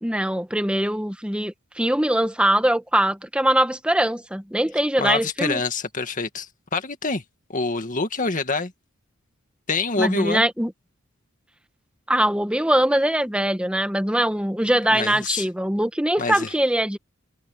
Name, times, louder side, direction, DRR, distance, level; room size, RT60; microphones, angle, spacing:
voice 1, 0.0-5.6 10.0-10.7 12.1-17.0, right 1 dB, 5° right, 1.5 m, -22 dB
voice 2, 5.0-7.2 7.5-8.7 9.7-10.4 14.8-15.5 16.2-16.5, left 4 dB, 40° left, 2.1 m, -26 dB
head